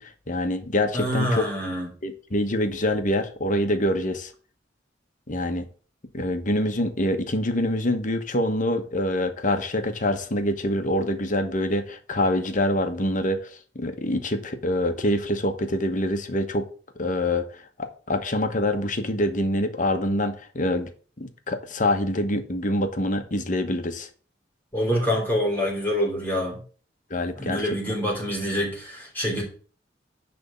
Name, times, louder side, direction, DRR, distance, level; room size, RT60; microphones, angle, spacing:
voice 1, 0.0-1.5 2.0-4.3 5.3-5.7 6.1-16.7 17.0-20.9 21.2-24.1 27.1-27.6, left 1 dB, 45° left, 1.1 m, -25 dB
voice 2, 0.9-1.9 24.7-26.6 27.4-29.4, equal, 10° left, 3.3 m, -26 dB
10.5 x 3.5 x 7.0 m
head